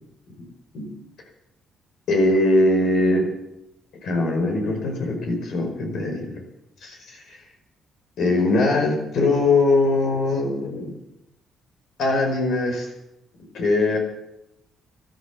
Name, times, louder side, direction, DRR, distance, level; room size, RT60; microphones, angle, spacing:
voice 1, 2.1-3.3 4.0-6.4 6.8-7.4 8.2-10.9 12.0-12.9 13.5-14.0, left 2 dB, 75° left, 3 dB, 4.8 m, -21 dB
13.5 x 12.0 x 8.2 m, 0.87 s
cardioid pair, 90°, 0 cm